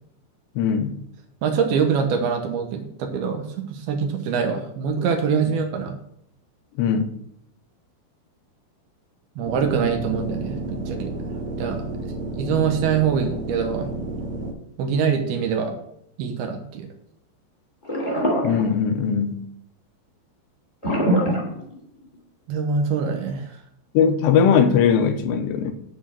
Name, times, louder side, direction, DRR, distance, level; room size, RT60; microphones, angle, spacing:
voice 1, 0.6-1.0 6.8-7.2 18.4-19.4 23.9-25.7, left 7 dB, 85° left, 2.9 m, -20 dB
voice 2, 1.4-3.5 3.7-5.9 9.4-11.1 11.6-11.8 12.4-13.9 14.8-15.7 16.2-16.9 22.5-23.5, right 6 dB, 75° right, 2.7 m, -24 dB
sound 1, 9.4-14.5, right 2 dB, 55° right, 1.7 m, -31 dB
sound 2, 17.8-19.2 20.8-22.1, equal, 20° left, 1.4 m, -23 dB
9.4 x 4.5 x 7.6 m
omnidirectional pair, 5.0 m